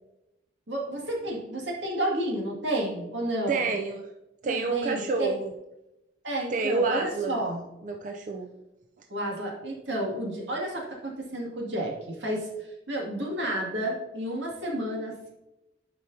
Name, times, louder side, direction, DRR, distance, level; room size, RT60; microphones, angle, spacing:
voice 1, 0.7-3.6 4.4-5.3 6.2-7.6 9.1-12.5 12.9-15.3, right 1 dB, 80° right, -2 dB, 2.2 m, -31 dB
voice 2, 3.5-4.1 4.4-5.5 6.5-7.4 7.8-8.6, right 4 dB, 45° right, 4 dB, 0.4 m, -28 dB
11.5 x 4.9 x 2.7 m, 0.95 s
head